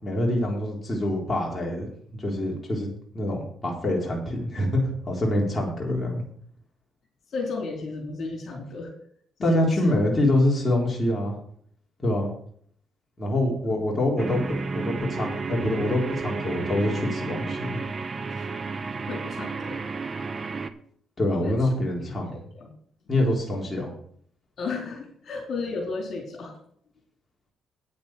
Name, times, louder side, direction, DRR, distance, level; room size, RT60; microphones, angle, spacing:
voice 1, 0.0-2.9 3.1-6.2 9.4-11.4 12.0-12.3 13.2-14.4 14.7-17.8 21.2-22.4 23.1-23.9, left 1 dB, 25° left, -2 dB, 3.9 m, -25 dB
voice 2, 7.3-8.9 9.4-10.1 18.3-18.5 19.1-19.8 21.4-21.6 22.0-22.7 24.6-26.5, left 3 dB, 60° left, 1 dB, 4.1 m, -33 dB
sound 1, 14.2-20.7, right 4 dB, 35° right, 1.0 m, -32 dB
9.6 x 8.6 x 6.1 m, 0.63 s
cardioid pair, 90°, 0 cm